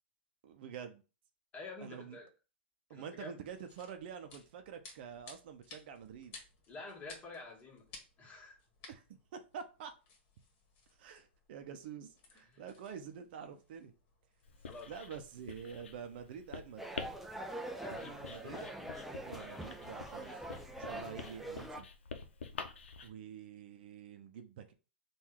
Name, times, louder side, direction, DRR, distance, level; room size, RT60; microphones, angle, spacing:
voice 1, 0.4-1.0 1.8-2.2 2.9-6.4 8.9-9.0 9.3-9.9 11.0-13.9 14.9-16.9 17.9-18.9 19.2-20.4 20.8-21.9 23.0-24.7, right 7 dB, 60° right, 7 dB, 0.7 m, -47 dB
voice 2, 1.5-2.3 2.9-3.4 6.7-7.8 8.2-8.6 12.3-12.6 14.6-14.9 17.8-18.6, left 3 dB, 20° left, -1 dB, 1.8 m, -49 dB
sound 1, 3.4-15.7, left 3 dB, 45° left, 1.6 m, -59 dB
Writing, 14.4-23.1, left 5 dB, 80° left, 0.7 m, -48 dB
sound 2, 16.8-21.8, right 1 dB, 5° right, 0.6 m, -44 dB
3.6 x 2.6 x 4.6 m, 0.32 s
hypercardioid pair, 115°, 6 cm